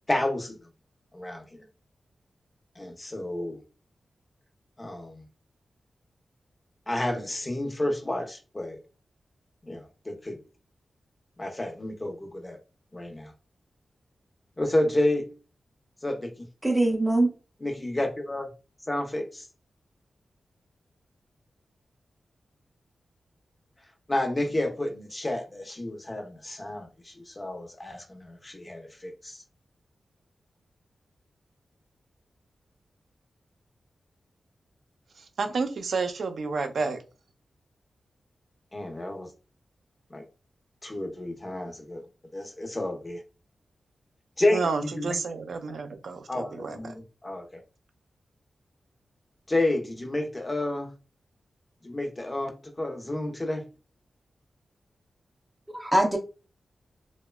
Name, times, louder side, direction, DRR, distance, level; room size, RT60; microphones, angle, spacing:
voice 1, 0.1-0.6 1.1-1.6 2.8-3.6 4.8-5.2 6.9-8.8 9.6-10.4 11.4-12.6 12.9-13.3 14.6-15.2 16.0-16.5 17.6-18.5 18.9-19.5 24.1-29.4 38.7-39.3 40.1-40.2 40.8-42.0 42.3-43.2 44.4-44.6 44.9-45.2 46.3-47.5 49.5-50.9 51.8-53.6, left 1 dB, 25° left, 0.6 m, -30 dB
voice 2, 16.6-17.3 55.7-56.2, right 1 dB, 15° right, 0.5 m, -22 dB
voice 3, 35.2-37.0 44.5-46.9, right 4 dB, 75° right, 0.4 m, -30 dB
2.9 x 2.1 x 2.2 m
wide cardioid pair, 85°, 0 cm